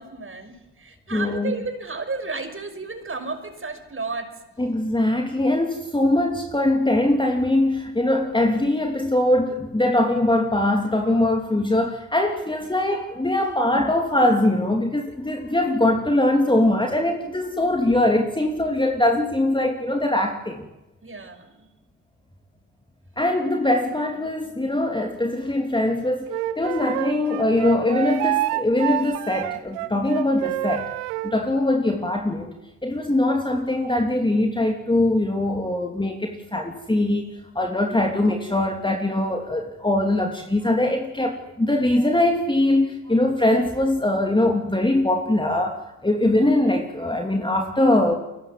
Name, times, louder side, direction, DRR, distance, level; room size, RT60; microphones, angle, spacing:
voice 1, 0.0-4.3 21.0-21.7, right 4 dB, 25° right, 8 dB, 5.9 m, -33 dB
voice 2, 1.1-1.5 4.6-20.7 23.2-26.3 26.6-30.9 31.2-32.5 32.8-48.2, left 1 dB, 10° left, 3 dB, 3.1 m, -22 dB
Wind instrument woodwind instrument, 26.3-31.4, right 16 dB, 70° right, 1.3 m, -27 dB
30.0 x 23.5 x 7.8 m, 1.0 s
figure-of-eight pair, 55°, 48 cm